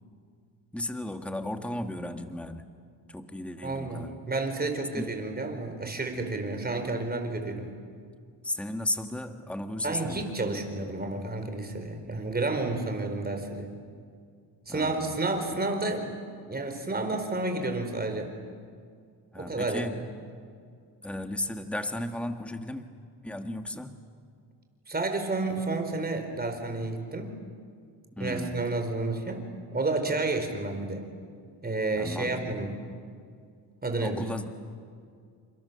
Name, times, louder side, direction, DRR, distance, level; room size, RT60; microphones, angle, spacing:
voice 1, 0.7-2.7 3.1-4.1 4.9-5.1 8.4-10.4 14.7-15.2 19.3-20.0 21.0-22.8 23.2-23.9 28.1-28.8 32.0-32.6 34.0-34.5, left 1 dB, 5° left, 7 dB, 1.6 m, -35 dB
voice 2, 3.6-7.7 9.8-13.7 14.7-16.1 16.5-18.3 19.4-20.0 24.9-27.3 28.2-31.1 31.6-32.7 33.8-34.2, right 2 dB, 20° right, 5 dB, 4.5 m, -31 dB
30.0 x 27.5 x 7.0 m, 2.2 s
cardioid pair, 105°, 42 cm